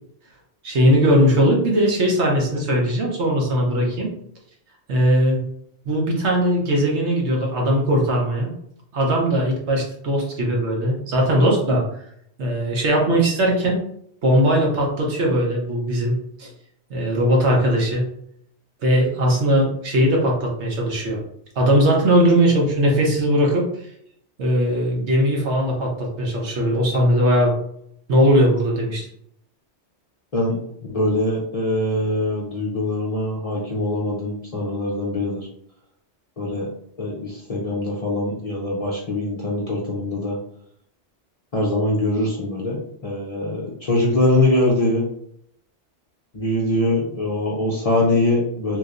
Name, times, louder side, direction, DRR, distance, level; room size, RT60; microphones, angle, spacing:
voice 1, 0.6-4.1 4.9-5.4 5.8-8.5 8.9-11.8 12.4-13.8 14.2-16.5 16.9-18.1 18.8-21.2 21.6-23.9 24.4-27.6 28.1-29.1, equal, 70° right, -1 dB, 1.1 m, -19 dB
voice 2, 30.3-35.5 36.4-36.7 37.0-40.4 41.5-45.0 46.3-48.8, left 1 dB, 45° left, -3 dB, 0.5 m, -23 dB
3.1 x 3.0 x 2.5 m, 0.70 s
omnidirectional pair, 1.2 m